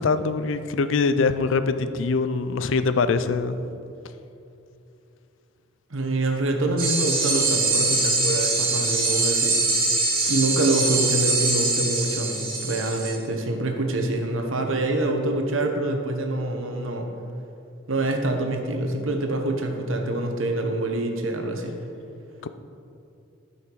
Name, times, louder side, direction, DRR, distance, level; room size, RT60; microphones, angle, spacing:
voice 1, 0.0-3.7 22.4-22.5, left 4 dB, 70° left, 0.4 m, -23 dB
voice 2, 5.9-9.6 10.3-17.1 17.9-21.8, right 2 dB, 80° right, 1.1 m, -26 dB
sound 1, 6.8-13.2, right 3 dB, 45° right, 2.2 m, -23 dB
12.5 x 5.7 x 4.7 m
head